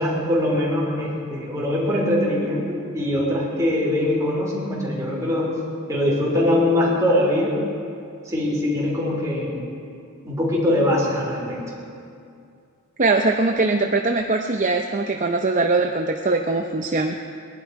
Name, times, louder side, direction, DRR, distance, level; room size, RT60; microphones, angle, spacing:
voice 1, 0.0-2.6 2.9-5.5 5.9-7.5 8.3-9.6 10.2-11.7, left 1 dB, 15° right, -4 dB, 3.5 m, -22 dB
voice 2, 13.0-17.2, right 3 dB, 35° right, 3 dB, 0.6 m, -21 dB
21.0 x 11.5 x 4.8 m, 2.4 s
head